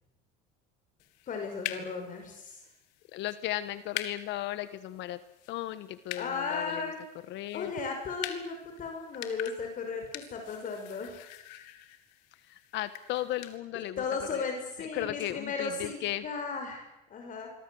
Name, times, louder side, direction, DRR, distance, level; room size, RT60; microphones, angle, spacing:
sound 1, 1.0-13.6, left 13 dB, 85° left, 2.9 m, -45 dB
voice 1, 1.2-2.7 6.2-7.0 7.5-11.2 13.7-17.5, left 5 dB, 40° left, 4 dB, 5.9 m, -36 dB
voice 2, 3.1-5.2 5.5-6.9 7.3-7.7 12.5-14.0 14.3-14.4 14.9-16.2, left 14 dB, 60° left, 13 dB, 1.4 m, -35 dB
27.5 x 24.0 x 8.0 m, 0.90 s
supercardioid pair, 115°, 21 cm